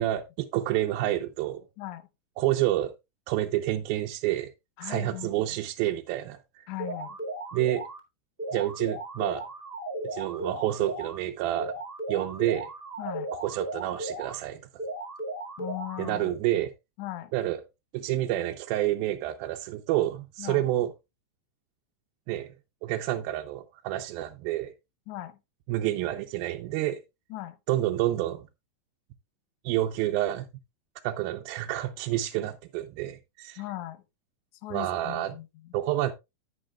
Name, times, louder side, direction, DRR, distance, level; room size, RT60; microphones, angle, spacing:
voice 1, 0.0-1.7 2.4-2.9 3.3-4.5 4.8-6.4 7.5-7.8 8.5-9.5 10.1-11.8 12.1-12.7 13.4-14.6 16.0-16.7 17.3-17.6 17.9-20.9 22.3-22.5 22.8-24.7 25.7-27.0 27.7-28.5 29.6-30.5 31.0-33.6 34.7-35.3 35.7-36.1, right 14 dB, 85° right, 2.5 m, -28 dB
voice 2, 1.8-2.1 4.8-5.6 6.7-7.2 13.0-13.3 15.6-16.3 17.0-17.3 20.4-20.6 25.1-25.4 27.3-27.6 33.6-34.0 34.6-35.7, left 15 dB, 70° left, 1.9 m, -38 dB
sound 1, 6.8-8.0 8.4-11.2 11.6-14.4 14.8-16.4, right 1 dB, 55° right, 0.5 m, -36 dB
10.0 x 9.8 x 2.3 m
omnidirectional pair, 4.2 m